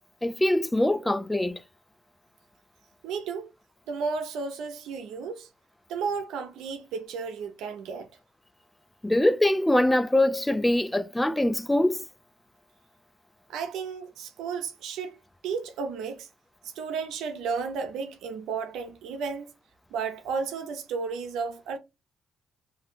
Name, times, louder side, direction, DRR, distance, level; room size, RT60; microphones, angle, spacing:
voice 1, 0.2-1.6 9.0-12.0, left 1 dB, 10° left, 0.4 m, -23 dB
voice 2, 3.0-3.5 3.9-5.5 5.9-8.1 13.5-16.3 16.6-19.5 19.9-21.8, right 5 dB, 85° right, 0.6 m, -33 dB
2.7 x 2.2 x 3.7 m
cardioid pair, 90°, 0 cm